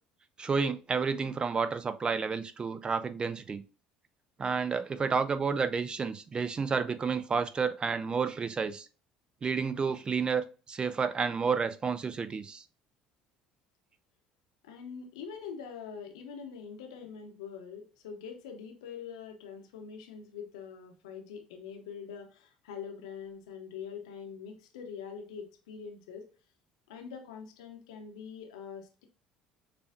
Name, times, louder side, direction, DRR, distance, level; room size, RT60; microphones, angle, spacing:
voice 1, 0.4-3.6 4.4-8.9 9.4-12.6, right 5 dB, 30° right, 11 dB, 0.5 m, -30 dB
voice 2, 14.6-26.2 26.9-29.0, left 6 dB, 70° left, 4 dB, 0.8 m, -44 dB
6.7 x 2.4 x 2.4 m, 0.35 s
figure-of-eight pair, 60°, 3 cm